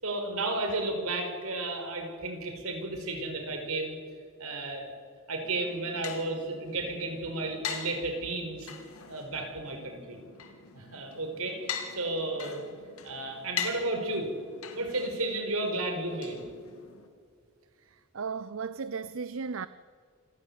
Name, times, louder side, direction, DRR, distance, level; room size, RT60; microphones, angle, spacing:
voice 1, 0.0-4.0 4.4-4.9 5.3-8.7 9.1-10.2 10.7-12.6 13.0-14.3 14.7-16.4, right 2 dB, 90° right, 5.1 m, -33 dB
sound 1, 5.4-17.1, left 6 dB, 85° left, 2.6 m, -42 dB
voice 2, 17.9-19.7, right 5 dB, 70° right, 0.6 m, -36 dB
27.0 x 16.0 x 8.2 m
head